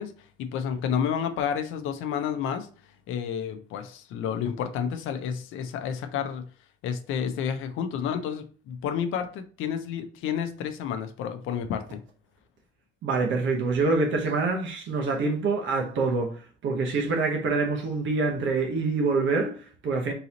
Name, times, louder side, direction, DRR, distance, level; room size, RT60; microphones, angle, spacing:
voice 1, 0.0-2.7 3.1-6.5 6.8-12.0, left 8 dB, 90° left, 0.6 m, -30 dB
voice 2, 13.0-20.1, right 3 dB, 70° right, 0.9 m, -26 dB
3.9 x 2.8 x 3.9 m
cardioid pair, 90°, 20 cm